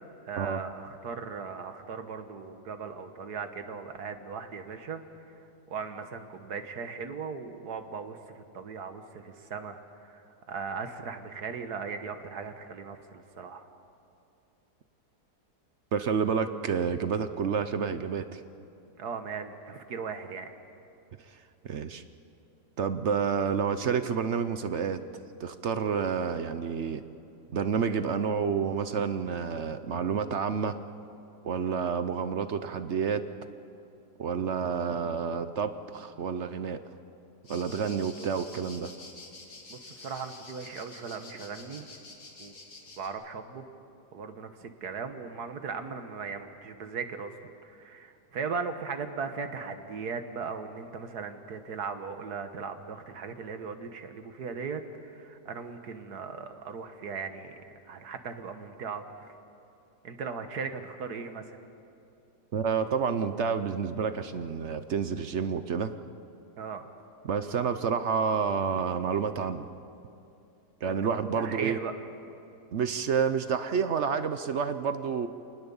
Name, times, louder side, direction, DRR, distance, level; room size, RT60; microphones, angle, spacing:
voice 1, 0.3-5.4 5.7-10.2 10.5-13.7 19.0-20.5 31.6-31.8 39.7-41.9 42.4-42.5 43.0-43.7 44.1-47.3 47.6-57.6 57.9-59.3 60.0-61.6 66.6-66.9 70.8-71.0 71.3-71.9, right 5 dB, 70° right, 8 dB, 1.8 m, -38 dB
voice 2, 15.9-18.4 21.6-22.0 22.8-25.0 25.4-27.0 27.5-30.8 31.4-33.2 34.2-36.8 37.5-38.9 62.5-65.9 67.2-69.7 70.8-71.8 72.7-75.3, right 6 dB, 55° right, 11 dB, 0.9 m, -29 dB
sound 1, 37.4-43.1, left 3 dB, 60° left, 2.7 m, -48 dB
27.0 x 19.5 x 7.1 m, 2.7 s
omnidirectional pair, 1.7 m